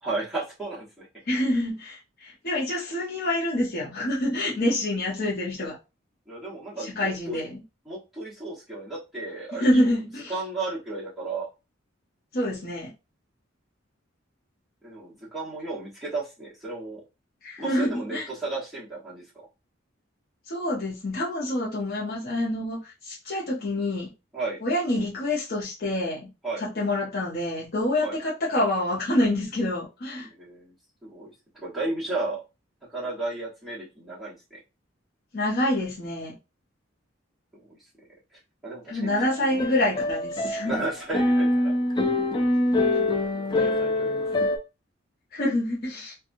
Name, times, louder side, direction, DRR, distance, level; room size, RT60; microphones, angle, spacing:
voice 1, 0.0-1.1 6.3-7.4 7.8-9.9 10.3-11.5 14.8-17.0 17.6-19.5 24.3-24.6 26.4-26.6 28.0-28.1 30.2-30.7 31.0-31.3 31.6-32.4 32.9-34.6 37.5-37.8 38.6-39.1 40.6-41.7 43.5-44.1 44.4-44.5, right 2 dB, ahead, 1.1 m, -33 dB
voice 2, 1.3-5.8 6.8-7.6 9.6-10.3 12.3-12.9 17.4-18.3 20.5-24.1 24.6-26.3 26.6-30.3 35.3-36.3 38.9-40.8 45.3-46.1, left 1 dB, 50° left, 0.7 m, -27 dB
sound 1, 39.1-44.6, left 1 dB, 20° left, 0.3 m, -25 dB
2.8 x 2.3 x 2.6 m
head